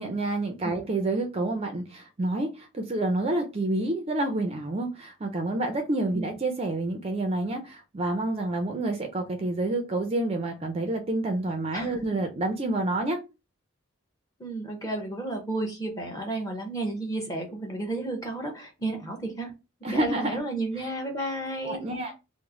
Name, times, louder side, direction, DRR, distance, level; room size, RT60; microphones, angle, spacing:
voice 1, 0.0-13.2 19.8-20.4 20.8-20.9 21.6-22.1, right 2 dB, 30° right, 5 dB, 0.4 m, -28 dB
voice 2, 11.7-12.2 14.4-19.5 19.9-22.1, right 2 dB, 15° left, 2 dB, 0.7 m, -32 dB
3.0 x 2.0 x 3.6 m, 0.27 s
head